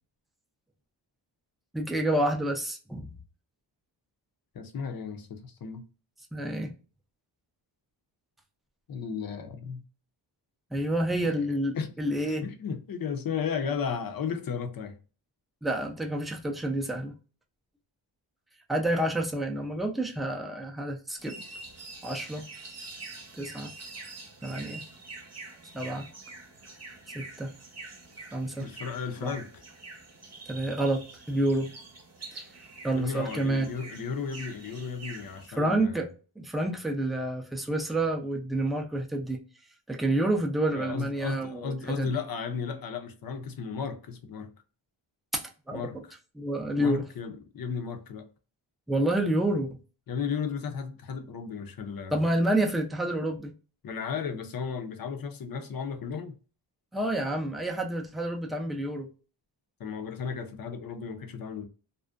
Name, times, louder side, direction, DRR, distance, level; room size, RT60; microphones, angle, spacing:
voice 1, 1.7-3.1 6.3-6.7 10.7-12.4 15.6-17.1 18.7-21.4 22.0-22.4 23.4-23.7 24.4-24.8 25.7-26.1 27.1-27.5 28.3-28.7 29.2-29.3 30.5-31.0 31.3-31.7 32.3-32.4 32.8-33.7 35.6-36.1 36.4-39.4 39.9-42.1 45.3-45.9 46.4-47.0 48.9-49.7 52.1-53.5 56.9-59.1, right 1 dB, ahead, 0.4 m, -28 dB
voice 2, 4.5-5.8 8.9-9.8 11.2-11.5 11.7-11.9 12.3-15.0 28.6-29.6 32.9-36.0 40.7-44.5 45.7-46.0 46.8-48.3 50.1-52.2 53.8-56.3 59.8-61.7, left 6 dB, 50° left, 0.6 m, -34 dB
sound 1, 21.2-35.5, right 3 dB, 35° right, 0.8 m, -46 dB
2.4 x 2.1 x 2.4 m
cardioid pair, 80°, 46 cm